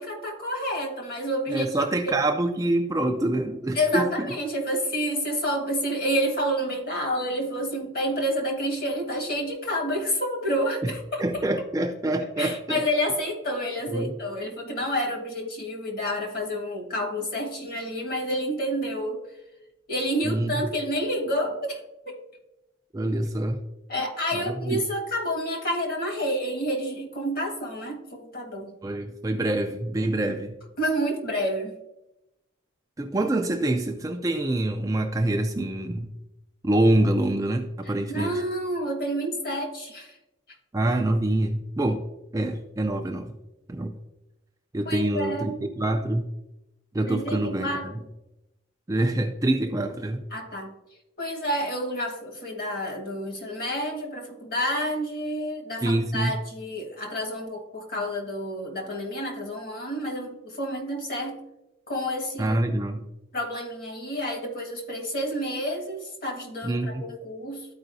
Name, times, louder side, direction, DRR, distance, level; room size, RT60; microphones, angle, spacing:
voice 1, 0.0-1.7 3.7-11.4 12.4-19.2 19.9-21.8 22.0-22.2 23.9-28.7 30.8-31.8 37.8-40.1 44.8-45.6 47.0-48.0 50.3-50.7 51.2-61.4 61.9-62.6 63.3-67.7, equal, 45° left, 2 dB, 1.6 m, -29 dB
voice 2, 1.5-4.3 10.8-10.9 11.2-12.8 13.9-14.1 20.2-20.6 22.9-23.6 24.3-24.8 28.8-30.5 33.0-36.1 36.6-38.4 40.7-42.0 42.3-43.3 43.7-43.9 44.7-45.5 45.8-46.2 46.9-47.7 48.9-50.2 55.8-56.3 62.4-63.0 66.6-67.0, right 1 dB, 15° right, 4 dB, 0.3 m, -25 dB
13.0 x 4.8 x 2.6 m, 0.94 s
head